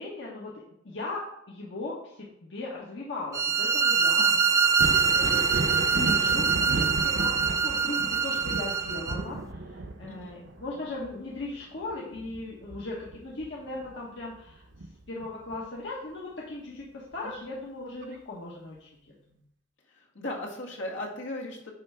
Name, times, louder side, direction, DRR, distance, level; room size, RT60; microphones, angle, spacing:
voice 1, 0.0-4.3 5.1-18.9 19.3-19.4, left 2 dB, 70° left, -4 dB, 1.3 m, -38 dB
sound 1, 3.3-9.2, right 5 dB, 15° right, 0.3 m, -24 dB
voice 2, 4.2-4.5 10.0-10.4 17.2-17.3 19.9-21.7, left 1 dB, 90° left, -2 dB, 1.9 m, -37 dB
Thunder, 4.6-14.0 14.3-15.6 17.1-17.2 18.0-18.2, right 2 dB, 75° right, 0.8 m, -35 dB
9.6 x 3.3 x 5.8 m, 0.76 s
head